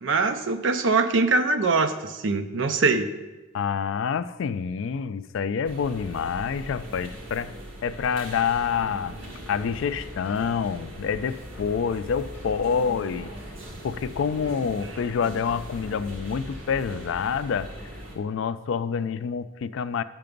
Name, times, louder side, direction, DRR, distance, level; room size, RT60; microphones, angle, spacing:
voice 1, 0.0-3.1, right 3 dB, 60° right, 8 dB, 0.5 m, -23 dB
voice 2, 3.5-7.5 7.8-9.1 9.5-13.3 13.8-17.7 18.1-20.0, left 6 dB, 65° left, 13 dB, 0.3 m, -27 dB
sound 1, 5.6-18.2, equal, 80° right, 1.6 m, -40 dB
sound 2, 9.0-10.8 11.1-12.9 13.2-14.9 15.3-17.0, equal, 10° right, 1.7 m, -46 dB
6.7 x 5.9 x 5.2 m, 1.1 s
head